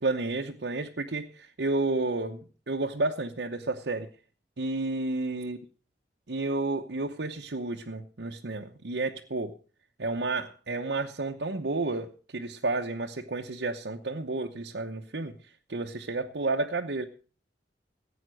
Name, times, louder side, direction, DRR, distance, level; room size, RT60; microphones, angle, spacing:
voice 1, 0.0-4.1 4.6-5.6 6.3-9.5 10.0-15.3 15.7-17.1, right 2 dB, 70° right, 2 dB, 0.9 m, -31 dB
15.5 x 8.8 x 6.3 m, 0.40 s
head